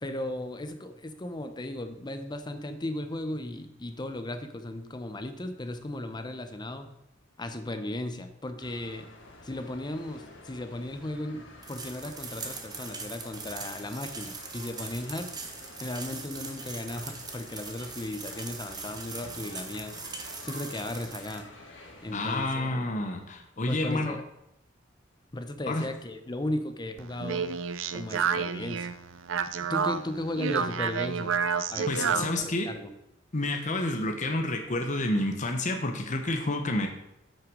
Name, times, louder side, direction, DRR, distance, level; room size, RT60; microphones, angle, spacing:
voice 1, 0.0-6.9 7.4-9.1 9.4-15.3 15.8-19.9 20.4-21.4 22.0-22.8 23.7-24.2 25.3-27.5 27.9-28.9 29.7-31.4 31.7-32.9, left 1 dB, 25° left, 8 dB, 0.7 m, -36 dB
sound 1, 8.6-22.6, left 2 dB, 70° left, 2.0 m, -49 dB
sound 2, 11.6-21.4, right 4 dB, 20° right, 1.2 m, -41 dB
voice 2, 22.1-24.2 25.7-25.9 31.9-32.7 33.3-36.9, left 2 dB, 40° left, 4 dB, 1.0 m, -29 dB
Speech, 27.0-32.4, right 6 dB, 85° right, 0.5 m, -30 dB
8.8 x 6.0 x 6.2 m, 0.83 s
head